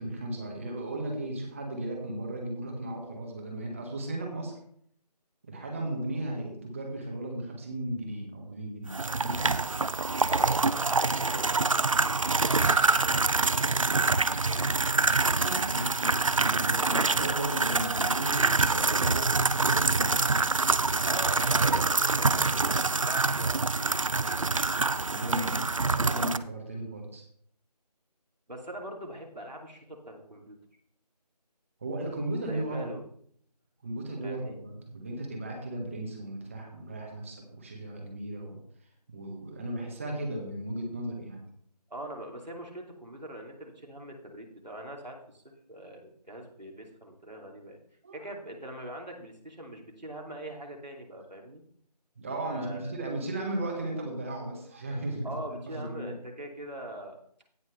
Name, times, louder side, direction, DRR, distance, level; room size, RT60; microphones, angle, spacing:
voice 1, 0.0-4.5 5.4-9.4 14.9-20.4 25.1-27.2 31.8-32.9 33.8-38.6 39.1-41.4 48.0-48.3 52.2-56.1, right 1 dB, 20° right, 0 dB, 1.5 m, -36 dB
sound 1, 8.9-26.4, right 3 dB, 50° right, 0.5 m, -26 dB
voice 2, 10.3-14.8 21.0-24.0 24.2-24.6 28.5-30.6 32.5-33.0 34.2-34.6 41.9-47.8 48.1-51.6 52.4-53.0 55.2-57.2, right 1 dB, 85° right, 1 dB, 2.8 m, -42 dB
16.5 x 6.2 x 3.3 m, 0.63 s
figure-of-eight pair, 170°, 21 cm